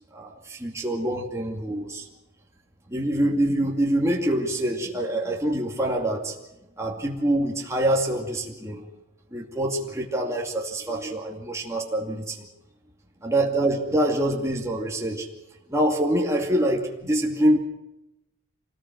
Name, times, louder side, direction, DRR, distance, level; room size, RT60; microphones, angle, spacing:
voice 1, 0.1-2.1 2.9-6.3 6.8-8.9 9.3-12.4 13.2-15.3 15.7-17.6, right 1 dB, 15° right, -1 dB, 2.4 m, -25 dB
26.0 x 19.5 x 6.2 m, 0.91 s
head